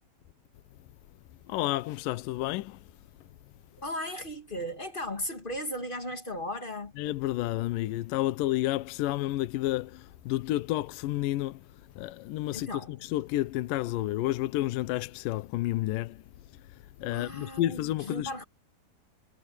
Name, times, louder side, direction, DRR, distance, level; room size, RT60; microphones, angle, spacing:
voice 1, 1.5-2.8 3.2-3.3 7.0-11.7 12.0-16.2 17.0-18.4, left 15 dB, 75° left, 2.3 m, -30 dB
voice 2, 3.8-6.9 12.5-12.9 17.1-18.4, left 1 dB, 35° left, 0.8 m, -36 dB
omnidirectional pair, 4.3 m